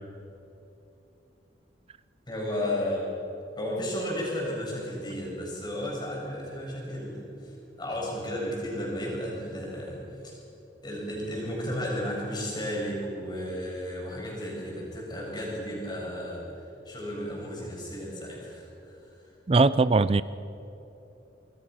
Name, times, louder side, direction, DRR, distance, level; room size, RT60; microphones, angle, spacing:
voice 1, 2.3-3.1 3.6-10.4 10.8-16.5 16.8-19.1, equal, 25° left, -3 dB, 7.7 m, -33 dB
voice 2, 19.5-20.2, right 3 dB, 30° right, 16 dB, 0.4 m, -20 dB
27.0 x 21.5 x 6.3 m, 3.0 s
head